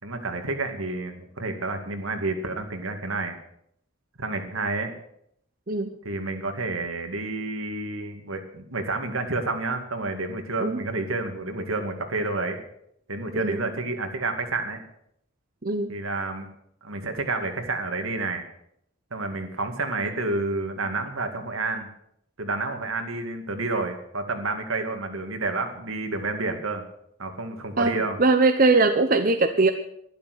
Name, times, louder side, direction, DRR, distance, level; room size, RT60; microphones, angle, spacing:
voice 1, 0.0-3.3 4.2-4.9 6.0-12.6 13.1-14.8 15.9-16.5 16.8-18.4 19.1-21.9 22.4-26.8 27.2-28.2, right 3 dB, 80° right, 6 dB, 2.3 m, -29 dB
voice 2, 15.6-15.9 27.8-29.7, right 3 dB, 40° right, 7 dB, 0.9 m, -21 dB
12.5 x 11.5 x 8.1 m, 0.73 s
head